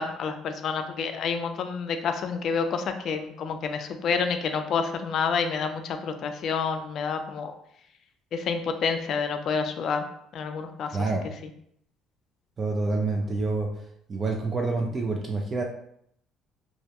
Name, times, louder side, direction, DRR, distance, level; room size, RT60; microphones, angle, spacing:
voice 1, 0.0-7.5 8.3-10.1 10.3-10.9 11.4-11.5, left 5 dB, 55° left, 7 dB, 0.3 m, -28 dB
voice 2, 10.9-11.3 12.6-13.7 14.1-15.6, right 3 dB, 35° right, 1 dB, 0.3 m, -27 dB
2.2 x 2.1 x 2.8 m, 0.70 s
cardioid pair, 105°, 0 cm